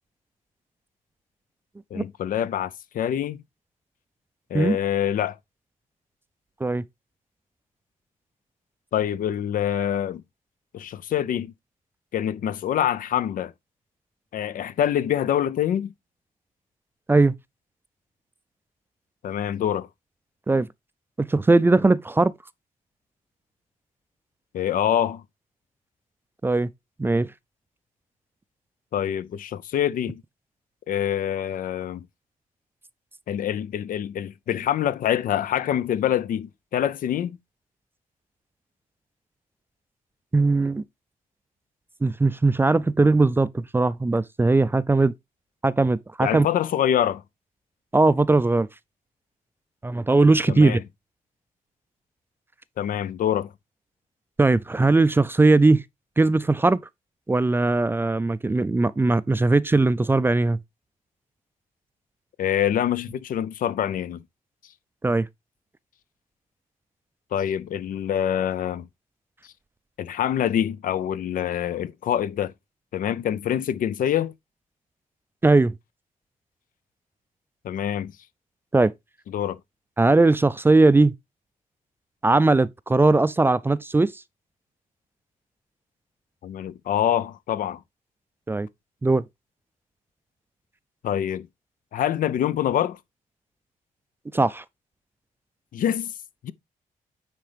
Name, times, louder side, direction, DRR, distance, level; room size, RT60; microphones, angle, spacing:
voice 1, 1.9-3.4 4.5-5.4 8.9-10.2 10.7-11.5 12.1-13.5 14.3-15.9 19.2-19.9 24.5-25.2 28.9-30.2 30.9-32.1 33.3-37.4 46.2-47.2 50.5-50.8 52.8-53.5 62.4-64.2 67.3-68.9 70.0-72.5 72.9-74.3 77.6-78.1 79.3-79.6 86.4-87.8 91.0-91.5 91.9-93.0 95.7-96.1 96.4-96.5, left 10 dB, 80° left, 0.5 m, -25 dB
voice 2, 21.2-22.3 26.4-26.7 27.0-27.3 40.3-40.8 42.0-45.1 45.6-46.5 47.9-48.7 49.8-50.8 54.4-55.8 56.2-56.8 57.3-60.6 65.0-65.3 75.4-75.7 78.7-78.9 80.0-81.1 82.2-84.1 88.5-88.7 89.0-89.2 94.3-94.6, right 3 dB, 15° right, 0.3 m, -19 dB
9.3 x 4.0 x 3.3 m
cardioid pair, 115°, 14 cm